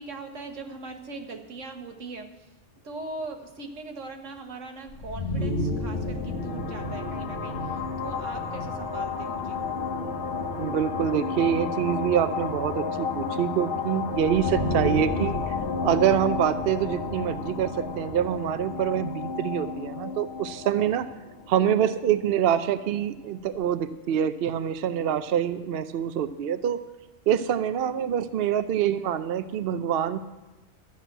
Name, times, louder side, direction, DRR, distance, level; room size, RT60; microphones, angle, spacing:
voice 1, 0.0-2.5 2.8-9.6, right 3 dB, 80° right, 5 dB, 1.6 m, -40 dB
sound 1, 4.9-22.5, left 3 dB, 55° left, 1.3 m, -31 dB
voice 2, 10.6-15.5 15.8-21.1 21.5-26.8 27.3-30.2, right 9 dB, 60° right, 12 dB, 0.7 m, -25 dB
13.5 x 6.0 x 9.0 m, 1.1 s
omnidirectional pair, 1.3 m